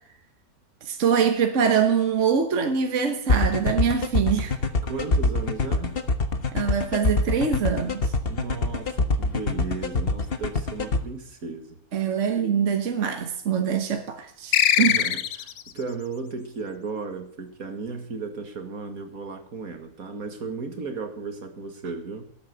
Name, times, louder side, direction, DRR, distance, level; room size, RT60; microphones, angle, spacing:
voice 1, 0.8-4.6 6.5-8.1 11.9-14.9, right 7 dB, 55° right, 1.5 m, -24 dB
sound 1, 3.3-11.0, left 3 dB, 40° left, 1.4 m, -23 dB
voice 2, 4.8-6.0 8.3-11.8 12.1-12.2 14.8-22.2, right 4 dB, 75° right, 2.3 m, -35 dB
sound 2, 14.5-15.7, left 10 dB, 85° left, 1.3 m, -21 dB
19.0 x 8.6 x 6.8 m
omnidirectional pair, 1.5 m